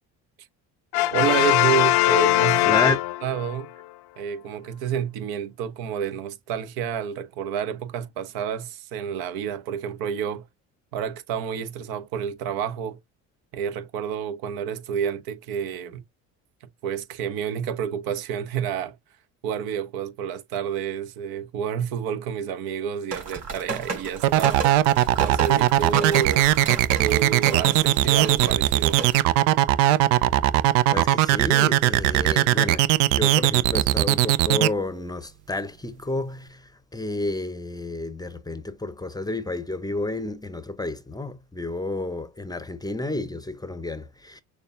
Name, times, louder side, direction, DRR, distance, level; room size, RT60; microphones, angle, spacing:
Brass instrument, 0.9-3.6, left 17 dB, 75° left, 0.6 m, -20 dB
voice 1, 1.1-2.7 3.2-3.7 4.2-10.5 10.9-13.0 13.5-16.0 16.8-19.0 19.4-24.6 25.2-26.5 27.0-29.0, right 8 dB, 70° right, 0.9 m, -29 dB
voice 2, 2.6-3.0 30.9-44.4, left 2 dB, 10° left, 0.6 m, -30 dB
sound 1, 23.1-29.2, right 4 dB, 45° right, 3.4 m, -33 dB
sound 2, 24.2-34.7, right 14 dB, 85° right, 0.5 m, -19 dB
6.5 x 2.3 x 2.5 m
supercardioid pair, 80°, 37 cm